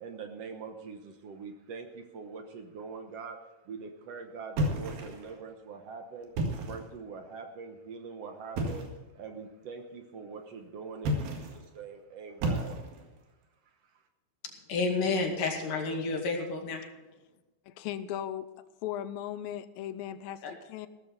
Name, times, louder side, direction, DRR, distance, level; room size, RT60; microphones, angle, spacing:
voice 1, 0.0-6.3 6.7-12.8 13.8-14.0, right 5 dB, 65° right, 6 dB, 1.7 m, -43 dB
sound 1, 4.6-5.4 6.2-6.9 8.6-9.0 11.0-11.7 12.4-13.1, right 1 dB, 80° right, 3.7 m, -32 dB
voice 2, 14.7-16.8 20.4-20.5, left 3 dB, 70° left, 2 dB, 3.8 m, -30 dB
voice 3, 17.7-18.5 18.8-20.9, left 11 dB, 85° left, 13 dB, 2.5 m, -37 dB
16.5 x 13.5 x 4.1 m, 1.1 s
omnidirectional pair, 4.1 m